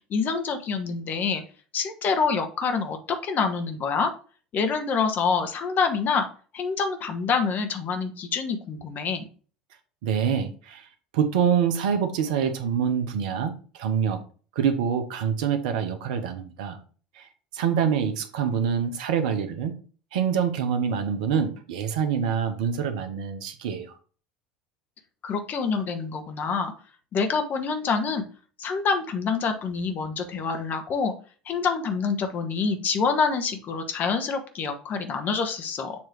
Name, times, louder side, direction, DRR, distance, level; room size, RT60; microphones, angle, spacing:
voice 1, 0.1-1.4 1.7-4.1 4.5-6.3 6.5-9.3 25.2-26.7 27.1-28.2 28.6-31.1 31.5-36.0, left 5 dB, 40° left, 6 dB, 1.1 m, -26 dB
voice 2, 10.0-10.9 11.1-14.2 14.5-16.8 17.2-17.3 17.5-19.7 20.1-24.0, right 7 dB, 70° right, 8 dB, 0.9 m, -26 dB
7.2 x 3.1 x 4.7 m, 0.40 s
figure-of-eight pair, 70°, 4 cm